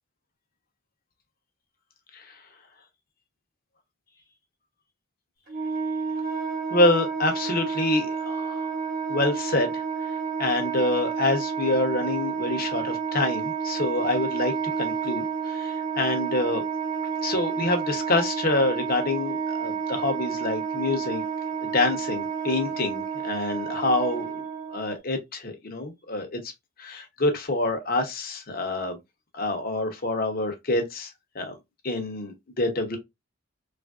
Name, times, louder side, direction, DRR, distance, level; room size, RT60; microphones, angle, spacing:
Wind instrument woodwind instrument, 5.5-25.0, right 6 dB, 45° right, 0.9 m, -30 dB
voice 1, 6.7-8.7 9.1-9.8 10.4-16.6 17.2-21.2 21.6-24.4 24.7-26.5 26.8-29.0 29.3-31.5 31.8-33.0, left 2 dB, 45° left, 0.8 m, -26 dB
3.3 x 2.4 x 2.3 m
head